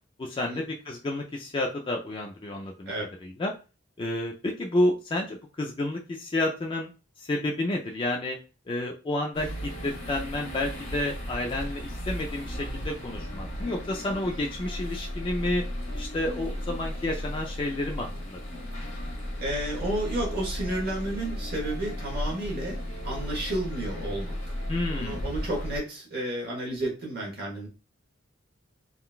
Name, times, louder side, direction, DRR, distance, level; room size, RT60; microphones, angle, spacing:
voice 1, 0.2-2.9 3.2-3.5 4.0-6.9 7.2-8.4 8.7-15.6 15.9-18.4 24.7-25.2, left 1 dB, 25° left, 1 dB, 0.3 m, -30 dB
sound 1, 9.3-25.8, equal, 90° left, 1.0 m, -35 dB
voice 2, 19.4-24.6 24.9-27.7, right 1 dB, 50° right, -1 dB, 0.9 m, -32 dB
3.7 x 2.2 x 2.3 m, 0.32 s
head